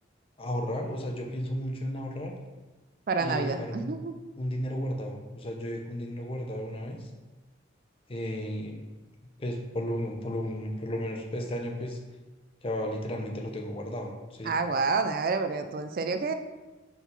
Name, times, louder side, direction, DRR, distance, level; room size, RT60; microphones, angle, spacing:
voice 1, 0.4-2.4 3.2-3.9 4.4-7.1 8.1-8.8 9.4-12.0 12.6-14.6, equal, 30° left, 2 dB, 0.6 m, -33 dB
voice 2, 3.1-4.1 14.4-16.3, right 4 dB, 50° right, 8 dB, 0.3 m, -28 dB
4.5 x 4.0 x 5.3 m, 1.2 s
head